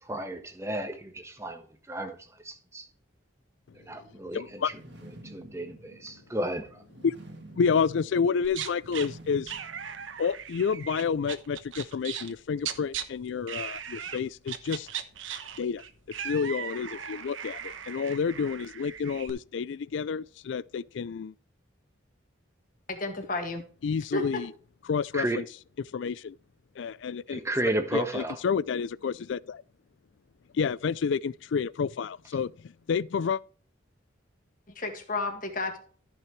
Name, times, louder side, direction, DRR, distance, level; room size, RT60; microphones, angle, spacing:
voice 1, 0.0-2.9 3.7-4.8 5.2-6.8 25.1-25.4 27.3-28.4, right 1 dB, 15° right, 1.2 m, -33 dB
voice 2, 4.3-4.7 7.0-7.2 7.5-9.6 10.2-14.9 15.6-15.8 16.2-21.3 23.8-24.5 24.9-25.4 25.9-26.4 26.8-27.4 27.9-29.6 30.5-33.4, left 6 dB, 70° left, 0.4 m, -29 dB
sound 1, 4.6-10.7, right 2 dB, 60° right, 2.1 m, -50 dB
sound 2, 8.4-9.1 9.5-12.3 12.6-13.0 13.5-14.2 14.5-19.3, right 8 dB, 85° right, 1.0 m, -38 dB
voice 3, 22.9-23.6 24.1-24.4 34.8-35.8, left 2 dB, 45° left, 2.0 m, -32 dB
14.0 x 5.8 x 3.2 m
head